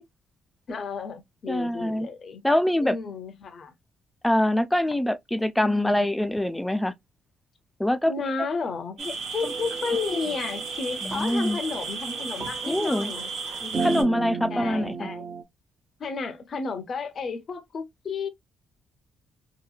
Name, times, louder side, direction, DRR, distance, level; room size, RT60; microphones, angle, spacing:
voice 1, 0.7-2.4 2.8-3.7 5.6-6.1 8.1-13.3 13.6-14.1 14.5-15.3 16.0-18.3, left 4 dB, 50° left, 0.6 m, -33 dB
voice 2, 1.5-2.1 2.4-3.0 4.2-6.9 7.8-8.1 11.0-11.6 12.7-13.1 13.8-15.1, left 1 dB, 5° left, 0.4 m, -24 dB
sound 1, 9.0-14.0, right 4 dB, 85° right, 1.2 m, -34 dB
sound 2, 9.4-15.4, right 4 dB, 40° right, 0.6 m, -34 dB
2.8 x 2.2 x 2.3 m
cardioid pair, 90°, 0 cm